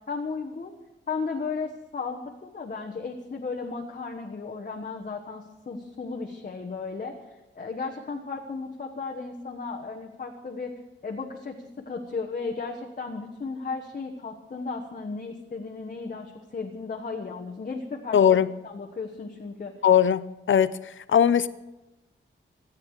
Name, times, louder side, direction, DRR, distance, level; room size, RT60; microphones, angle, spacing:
voice 1, 0.1-0.8 1.1-7.1 7.5-10.7 11.0-18.4 18.6-19.7, left 4 dB, 40° left, 1.3 m, -35 dB
voice 2, 18.1-18.5 19.8-21.5, left 8 dB, 65° left, 0.6 m, -20 dB
26.5 x 9.5 x 4.8 m
wide cardioid pair, 175°, 21 cm